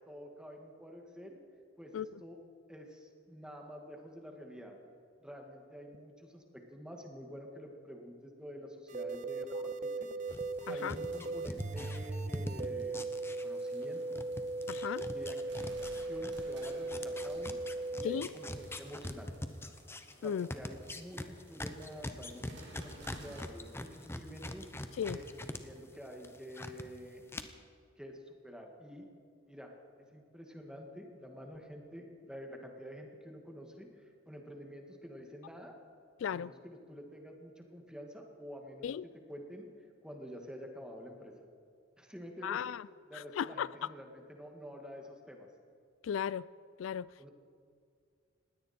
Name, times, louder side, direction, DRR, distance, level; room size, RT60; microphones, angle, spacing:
voice 1, 0.1-1.4 1.8-2.4 2.7-4.8 5.2-10.1 10.7-13.1 13.4-14.2 15.1-17.6 18.0-19.4 20.2-24.6 25.1-27.2 28.0-29.1 29.5-29.7 30.1-35.7 36.3-38.9 39.3-39.7 40.0-41.3 42.0-42.6 43.1-45.5 47.2-47.3, equal, 5° right, 1.9 m, -48 dB
sound 1, 8.9-18.2, right 2 dB, 40° right, 0.6 m, -38 dB
sound 2, 10.3-13.9 14.1-25.6 25.9-26.8 27.3-27.4, left 1 dB, 15° left, 0.8 m, -43 dB
voice 2, 10.7-11.0 14.7-15.1 18.0-18.3 20.2-20.5 25.0-25.2 36.2-36.5 38.8-39.0 42.4-42.9 43.1-43.7 46.0-46.5 46.8-47.3, left 8 dB, 80° left, 0.3 m, -36 dB
sound 3, 10.7-23.5, right 1 dB, 65° right, 2.9 m, -57 dB
20.0 x 16.5 x 4.4 m
head